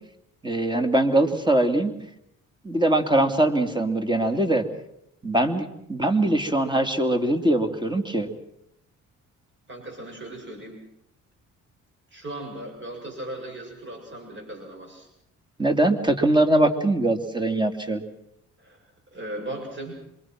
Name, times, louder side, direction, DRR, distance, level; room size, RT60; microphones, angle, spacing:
voice 1, 0.4-1.9 2.6-4.6 5.2-8.3 15.6-18.0, right 1 dB, 15° right, 6 dB, 2.8 m, -22 dB
voice 2, 9.7-10.8 12.1-15.1 18.6-18.8 19.1-20.0, right 1 dB, 40° right, 2 dB, 7.0 m, -37 dB
26.5 x 23.0 x 6.1 m, 0.78 s
cardioid pair, 90°, 30 cm